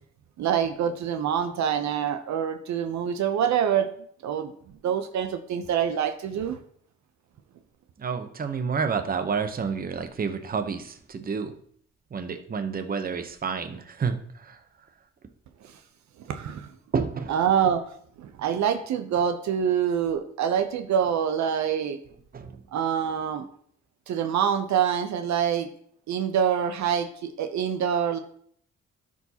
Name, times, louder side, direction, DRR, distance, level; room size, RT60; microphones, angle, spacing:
voice 1, 0.4-3.9 4.2-4.5 4.8-6.6 16.3-16.7 17.3-17.8 18.2-22.0 22.7-23.4 24.1-25.7 26.1-28.2, right 8 dB, 65° right, 9 dB, 0.7 m, -25 dB
voice 2, 8.0-11.5 12.1-14.6 16.9-17.3 22.3-22.6, right 5 dB, 30° right, 8 dB, 0.8 m, -29 dB
12.0 x 4.8 x 2.8 m, 0.63 s
cardioid pair, 90°, 30 cm